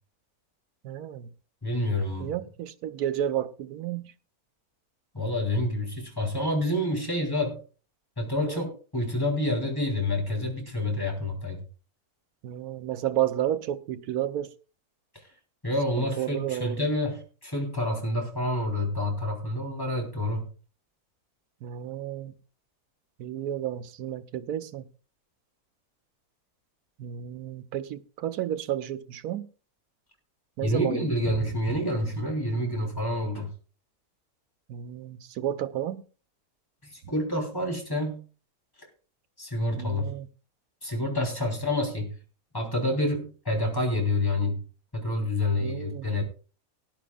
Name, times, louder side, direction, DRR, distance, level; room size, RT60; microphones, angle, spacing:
voice 1, 0.8-1.3 2.2-4.0 8.4-8.6 12.4-14.5 16.0-16.9 21.6-22.3 23.2-24.9 27.0-29.4 30.6-31.1 34.7-36.0 39.8-40.3 45.6-46.1, right 11 dB, 85° right, 1.3 m, -31 dB
voice 2, 1.6-2.3 5.1-7.6 8.2-11.6 15.6-20.5 30.6-33.5 36.9-38.2 39.4-40.1 40.8-42.1 42.5-44.6 44.9-46.2, left 1 dB, 15° left, 3.1 m, -28 dB
18.0 x 11.0 x 2.3 m
omnidirectional pair, 1.6 m